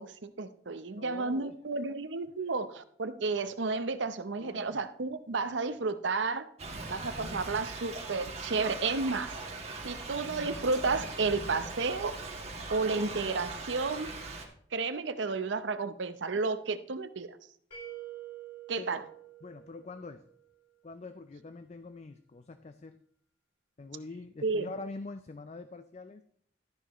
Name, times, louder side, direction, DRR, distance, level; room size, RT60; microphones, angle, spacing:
voice 1, 0.0-6.5 6.9-9.3 9.8-12.1 12.7-14.1 14.7-17.3 18.7-19.0 24.4-24.7, right 4 dB, 85° right, 12 dB, 0.7 m, -32 dB
voice 2, 1.0-1.8 4.4-4.8 18.8-19.0 19.4-20.3 20.8-23.0 23.8-26.2, left 3 dB, 35° left, 10 dB, 0.4 m, -44 dB
Thunder / Rain, 6.6-14.5, right 3 dB, 35° right, 1.6 m, -40 dB
sound 1, 17.7-20.6, right 11 dB, 85° left, 5.0 m, -47 dB
12.5 x 10.5 x 3.0 m, 0.64 s
head